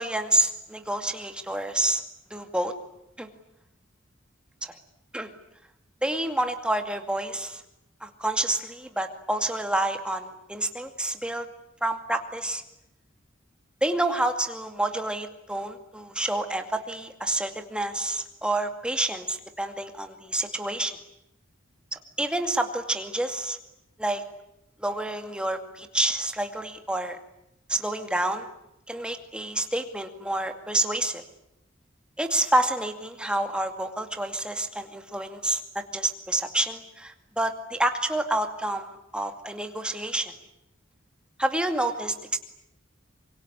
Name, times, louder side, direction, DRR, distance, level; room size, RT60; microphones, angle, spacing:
voice 1, 0.0-2.0 2.3-2.7 3.2-3.3 4.6-4.7 5.1-5.3 6.0-7.6 8.0-11.5 11.8-12.6 13.8-21.0 21.9-23.6 24.0-24.2 24.8-27.2 27.7-28.5 28.9-31.2 32.2-40.3 41.4-42.4, right 1 dB, 5° right, 6 dB, 2.3 m, -28 dB
25.0 x 23.0 x 10.0 m, 0.84 s
head